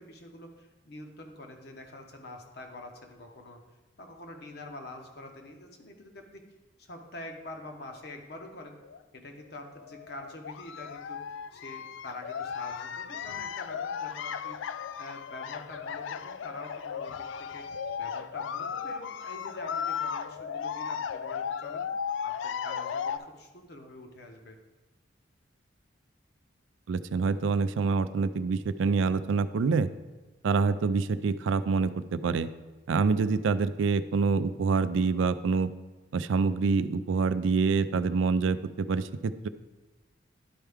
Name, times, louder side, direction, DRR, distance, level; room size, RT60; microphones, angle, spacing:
voice 1, 0.0-3.6 4.0-6.4 6.8-8.8 9.1-14.6 15.0-21.8 22.2-24.6, left 2 dB, 60° left, 3 dB, 1.0 m, -45 dB
sound 1, 8.0-8.1 8.8-9.0 9.4-23.2, left 7 dB, 80° left, 0.3 m, -36 dB
voice 2, 26.9-29.9 30.4-32.5 32.9-35.7 36.1-39.5, right 4 dB, 90° right, 13 dB, 0.4 m, -26 dB
11.0 x 4.5 x 3.5 m, 1.2 s
head